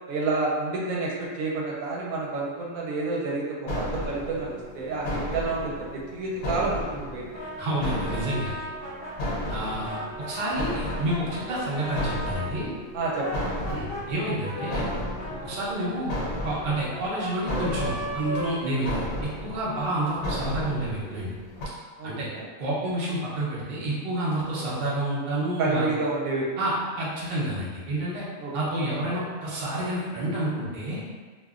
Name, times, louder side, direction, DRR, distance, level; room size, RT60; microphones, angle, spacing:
voice 1, 0.1-7.3 12.9-13.3 22.0-22.5 25.6-26.5 28.4-28.5, right 3 dB, 80° right, -3 dB, 1.0 m, -29 dB
sound 1, 3.7-21.7, left 1 dB, 65° left, 0.9 m, -34 dB
Brass instrument, 7.3-12.5 13.0-19.3, equal, 35° left, 0.6 m, -36 dB
voice 2, 7.6-8.5 9.5-12.7 13.7-14.9 15.4-16.1 16.4-21.3 22.0-22.3 22.6-25.9 26.6-28.2 28.5-31.0, right 1 dB, 45° right, -7 dB, 0.7 m, -29 dB
2.8 x 2.4 x 2.4 m, 1.4 s
omnidirectional pair, 1.5 m